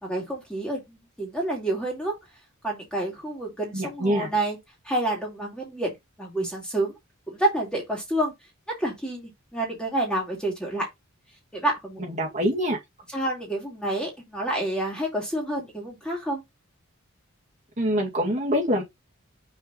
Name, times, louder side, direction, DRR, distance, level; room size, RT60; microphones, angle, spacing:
voice 1, 0.0-2.1 2.6-4.6 4.8-6.9 7.3-8.3 8.8-10.9 11.5-12.0 13.1-16.4, right 1 dB, 5° left, 2.3 m, -28 dB
voice 2, 3.7-4.3 12.0-12.8 17.8-18.8, equal, 35° right, 2.2 m, -25 dB
6.3 x 3.8 x 4.0 m
head